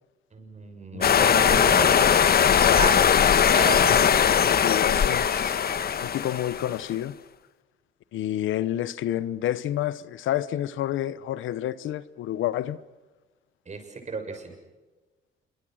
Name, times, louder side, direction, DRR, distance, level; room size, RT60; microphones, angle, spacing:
voice 1, 0.3-1.9 2.8-3.1 3.4-3.9 13.7-14.5, right 4 dB, 35° right, 6.7 m, -33 dB
voice 2, 0.9-2.2 2.6-2.9 3.2-3.3 3.7-4.1 4.6-5.6 6.0-7.2 8.1-12.8, left 12 dB, 80° left, 0.9 m, -30 dB
sound 1, 1.0-6.8, left 8 dB, 50° left, 1.2 m, -20 dB
27.5 x 24.5 x 6.4 m
cardioid pair, 90°, 20 cm